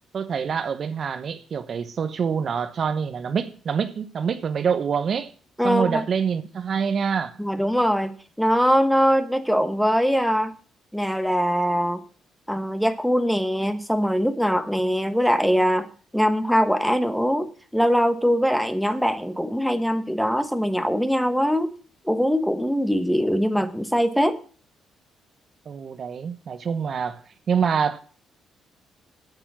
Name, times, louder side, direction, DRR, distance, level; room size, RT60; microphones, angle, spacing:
voice 1, 0.1-5.3 5.6-7.4 25.7-28.0, right 6 dB, 50° right, 0.9 m, -26 dB
voice 2, 5.6-6.0 7.4-10.5 10.9-12.0 12.5-15.9 16.1-21.7 22.0-24.4, equal, ahead, 1.1 m, -22 dB
9.0 x 8.0 x 7.3 m
cardioid pair, 90°, 0 cm